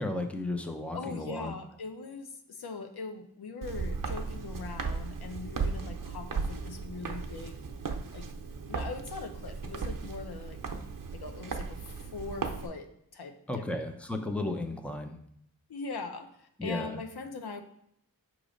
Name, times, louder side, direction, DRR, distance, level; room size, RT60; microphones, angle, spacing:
voice 1, 0.0-1.5 13.5-15.2 16.6-17.0, left 2 dB, 5° left, 5 dB, 0.6 m, -34 dB
voice 2, 0.9-7.6 8.1-8.2 8.7-10.6 11.1-11.8 12.1-12.9 13.1-13.6 15.7-17.6, left 4 dB, 90° left, 6 dB, 0.8 m, -41 dB
Walk footsteps, 3.6-12.7, right 4 dB, 60° right, 0.7 m, -36 dB
6.2 x 3.1 x 5.0 m, 0.70 s
wide cardioid pair, 85°, 37 cm